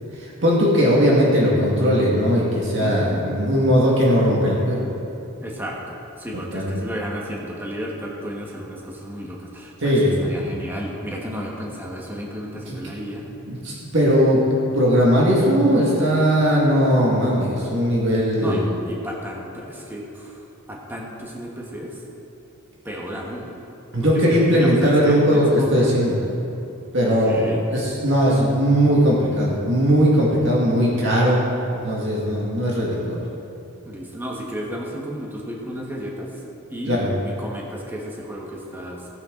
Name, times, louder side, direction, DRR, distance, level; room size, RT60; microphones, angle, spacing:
voice 1, 0.1-4.9 6.3-6.9 9.8-10.6 12.7-12.8 13.5-14.4 14.7-18.8 23.9-26.2 26.9-31.4 31.8-33.2 36.9-37.1, equal, 55° right, -5 dB, 2.0 m, -19 dB
voice 2, 2.8-3.3 5.4-13.3 18.4-20.4 20.7-22.0 22.8-23.5 24.1-25.8 27.0-27.6 33.8-36.3 36.7-39.1, equal, 10° right, -2 dB, 1.4 m, -33 dB
16.5 x 9.1 x 3.9 m, 3.0 s
head